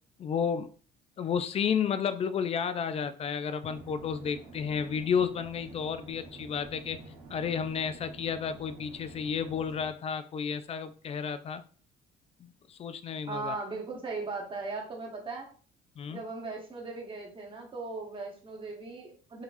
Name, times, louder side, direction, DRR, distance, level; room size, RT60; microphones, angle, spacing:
voice 1, 0.2-0.7 1.2-7.0 7.3-11.6 12.4-13.5 16.0-16.2, left 7 dB, 35° left, 11 dB, 0.4 m, -32 dB
sound 1, 3.6-9.9, right 3 dB, 80° right, 1.3 m, -49 dB
voice 2, 13.3-15.5 16.1-19.4, right 3 dB, 30° right, 0 dB, 1.2 m, -38 dB
3.9 x 2.9 x 2.6 m, 0.41 s
cardioid pair, 110°, 17 cm